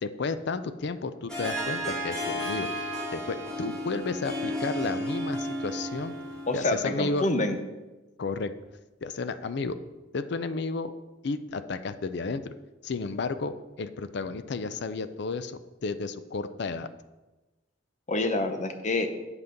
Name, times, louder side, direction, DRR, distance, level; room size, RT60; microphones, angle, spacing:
voice 1, 0.0-2.7 3.1-6.1 6.5-7.3 8.2-8.5 9.0-9.8 10.1-10.9 11.2-12.5 12.8-16.9, left 4 dB, 65° left, 12 dB, 0.5 m, -32 dB
Harp, 1.3-6.8, equal, 5° left, 2.1 m, -33 dB
voice 2, 6.5-7.6 18.1-19.1, left 2 dB, 40° left, 7 dB, 0.8 m, -27 dB
8.0 x 5.8 x 5.2 m, 1.1 s
head